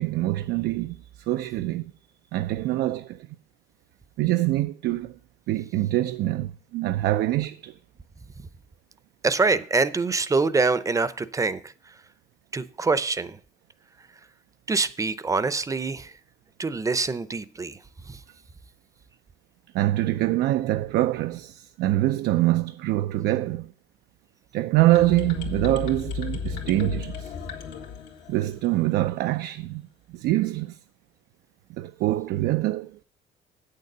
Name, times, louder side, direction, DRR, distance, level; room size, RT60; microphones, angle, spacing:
voice 1, 0.0-1.9 2.3-3.3 4.2-5.1 5.5-7.8 19.7-23.7 24.5-27.3 28.3-29.8 30.1-30.8 31.8-33.0, right 16 dB, 75° right, 0.4 m, -24 dB
voice 2, 9.2-11.6 12.5-13.4 14.7-16.1 16.6-17.8 18.1-18.2, right 4 dB, 20° right, 0.6 m, -25 dB
sound 1, 24.9-28.8, left 6 dB, 85° left, 1.8 m, -34 dB
8.4 x 6.7 x 6.6 m
cardioid pair, 110°, 17 cm